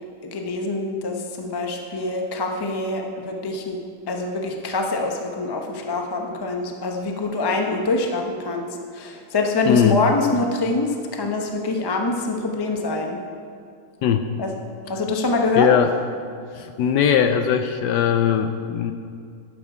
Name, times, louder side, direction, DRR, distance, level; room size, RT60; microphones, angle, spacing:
voice 1, 0.2-3.8 4.1-8.7 8.9-13.2 14.4-14.5 14.9-15.7, left 3 dB, 30° left, 3 dB, 0.4 m, -24 dB
voice 2, 9.7-10.0 14.0-14.3 15.6-15.9 16.6-18.9, left 8 dB, 75° left, 8 dB, 1.0 m, -19 dB
11.5 x 8.8 x 4.9 m, 2.3 s
omnidirectional pair, 2.1 m